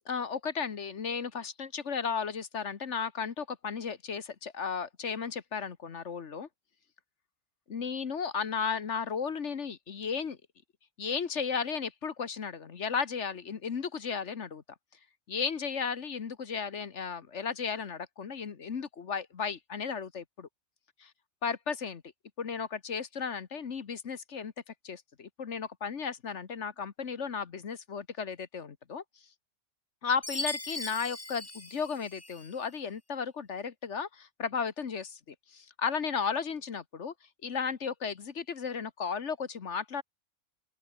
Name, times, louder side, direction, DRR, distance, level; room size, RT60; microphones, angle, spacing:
voice 1, 0.1-6.5 7.7-10.4 11.0-14.6 15.3-20.5 21.4-22.0 22.4-24.5 24.8-29.0 30.0-37.1 37.4-40.0, left 6 dB, 55° left, 1.5 m, -34 dB
Chime, 30.2-32.5, left 2 dB, 10° left, 1.0 m, -39 dB
open air
omnidirectional pair, 1.5 m